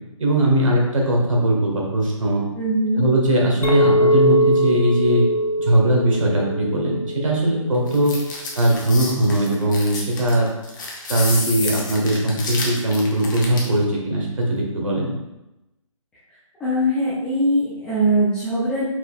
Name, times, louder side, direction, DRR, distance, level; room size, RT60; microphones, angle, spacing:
voice 1, 0.2-2.4 3.0-5.2 5.6-8.1 8.5-10.5 11.1-15.1, right 1 dB, 70° right, -1 dB, 1.5 m, -20 dB
voice 2, 2.5-3.0 16.6-18.8, right 1 dB, 5° left, -11 dB, 0.4 m, -21 dB
Chink clink, 3.6-8.1, equal, 85° left, 0.8 m, -21 dB
sound 1, 7.9-13.8, left 3 dB, 35° left, 0.9 m, -30 dB
4.6 x 4.0 x 2.4 m, 0.95 s
hypercardioid pair, 150°, 17 cm